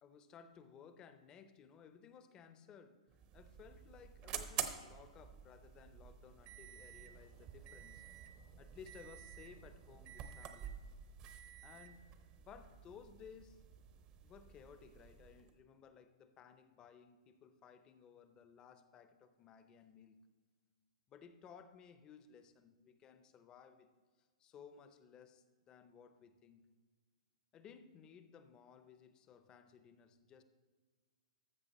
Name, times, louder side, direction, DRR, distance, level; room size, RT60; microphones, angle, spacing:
voice 1, 0.0-3.0 3.3-8.0 8.6-10.8 11.6-12.1 12.3-13.6 14.2-20.1 21.1-23.9 24.4-26.7 27.5-30.4, left 7 dB, 20° left, 10 dB, 0.6 m, -59 dB
sound 1, 3.1-15.5, right 9 dB, 25° right, 0.7 m, -49 dB
13.5 x 6.3 x 4.1 m, 1.5 s
hypercardioid pair, 150°, 4 cm